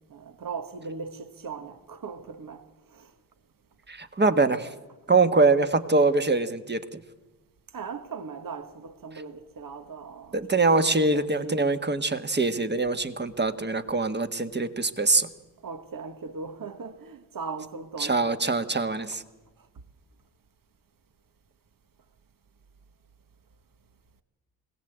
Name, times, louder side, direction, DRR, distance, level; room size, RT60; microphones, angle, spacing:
voice 1, 0.0-2.7 2.9-3.1 7.7-11.6 15.6-18.2, right 5 dB, 55° right, 1.5 m, -38 dB
voice 2, 3.9-4.7 5.1-7.0 10.3-15.3 18.0-19.2, right 3 dB, 25° right, 1.5 m, -23 dB
21.5 x 16.5 x 8.1 m
cardioid pair, 55°, 41 cm